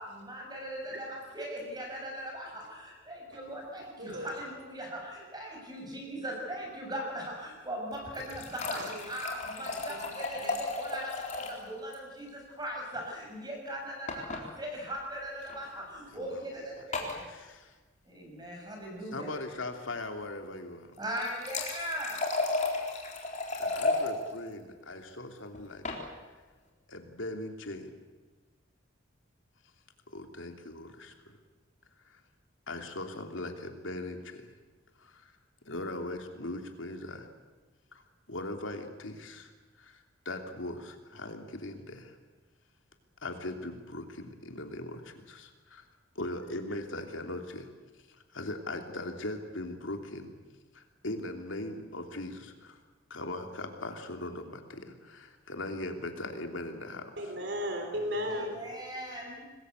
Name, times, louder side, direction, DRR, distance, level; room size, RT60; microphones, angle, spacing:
voice 1, 0.0-17.3 18.0-19.3 21.0-22.2 58.3-59.5, equal, 20° right, 0 dB, 7.1 m, -39 dB
voice 2, 4.0-4.3 8.7-9.1 9.9-10.1 10.4-10.5 57.2-58.6, equal, 60° right, 4 dB, 3.2 m, -35 dB
sound 1, 7.9-11.6 11.9-12.0 12.3-12.4 14.1-14.4 15.4-15.6 16.9-17.2 21.0-24.1 25.5-26.0, left 3 dB, 40° left, 3.9 m, -34 dB
voice 3, 16.1-16.4 17.2-17.8 19.1-20.9 23.6-25.8 26.9-27.9 30.1-31.4 32.0-32.2 32.7-34.5 35.0-35.3 35.7-37.3 37.9-38.0 38.3-39.5 39.8-42.2 43.2-45.9 46.1-47.7 48.1-50.3 50.7-52.8 53.1-57.1, left 2 dB, 75° left, 5 dB, 3.0 m, -40 dB
25.5 x 20.5 x 8.2 m, 1.3 s
head